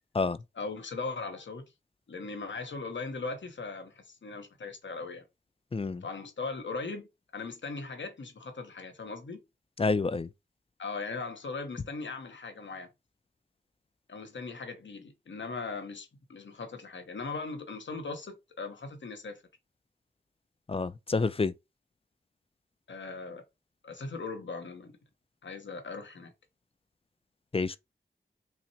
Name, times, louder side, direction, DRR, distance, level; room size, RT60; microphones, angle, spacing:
voice 1, 0.5-1.6 2.1-5.3 6.0-9.4 10.8-12.9 14.1-19.4 22.9-23.4 23.8-25.0 25.4-26.3, left 4 dB, 80° left, 0.9 m, -39 dB
voice 2, 5.7-6.0 9.8-10.3 20.7-21.5 27.5-27.8, left 4 dB, 30° left, 0.4 m, -28 dB
5.7 x 2.1 x 2.8 m
cardioid pair, 40°, 19 cm